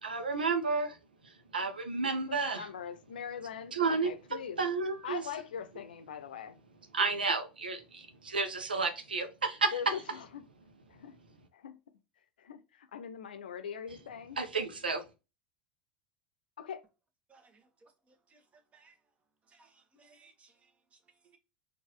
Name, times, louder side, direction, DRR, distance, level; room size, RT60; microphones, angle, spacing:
voice 1, 0.0-1.0 1.5-2.6 3.7-4.1 4.6-5.2 6.9-9.7 14.4-15.0, right 4 dB, 90° right, 0.7 m, -31 dB
voice 2, 2.3-4.6 5.0-6.6 9.7-10.4 10.9-11.2 11.5-11.8 12.4-14.4 16.6-16.8, left 7 dB, 80° left, 0.6 m, -42 dB
voice 3, 17.3-17.9 18.3-18.4 18.7-18.9 19.5-20.5, right 4 dB, 25° right, 1.2 m, -62 dB
4.5 x 2.6 x 3.0 m
hypercardioid pair, 80°, 5 cm